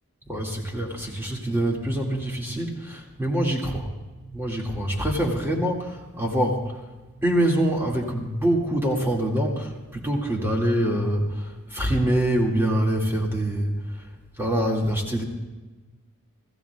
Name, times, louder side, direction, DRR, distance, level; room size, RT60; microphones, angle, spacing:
voice 1, 0.3-3.9 4.3-6.7 7.2-13.8 14.4-15.2, right 1 dB, 10° right, -2 dB, 2.2 m, -25 dB
24.5 x 15.0 x 2.4 m, 1.2 s
head